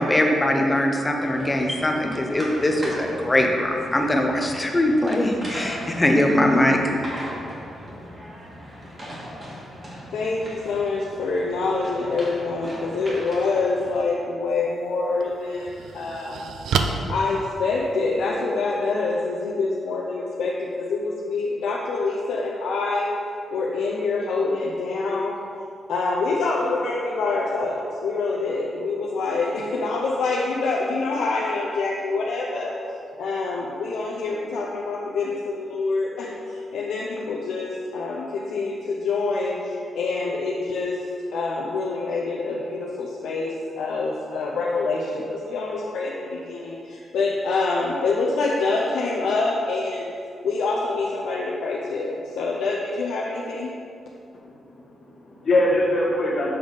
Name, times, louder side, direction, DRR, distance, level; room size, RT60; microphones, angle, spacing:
voice 1, 0.0-6.8, left 1 dB, 15° left, 2 dB, 0.6 m, -21 dB
sound 1, 1.2-14.0, equal, 30° right, 1.5 m, -38 dB
voice 2, 10.1-16.5 17.1-23.1 23.5-25.4 25.9-32.7 33.2-41.0 41.3-50.1 50.4-53.7, left 3 dB, 80° left, -3 dB, 0.6 m, -26 dB
sound 2, 14.5-14.6 15.2-18.2, right 5 dB, 75° right, 0.4 m, -29 dB
voice 3, 54.4-56.5, left 1 dB, 40° left, -5 dB, 1.3 m, -23 dB
6.8 x 5.3 x 3.9 m, 2.5 s
wide cardioid pair, 165°, 0 cm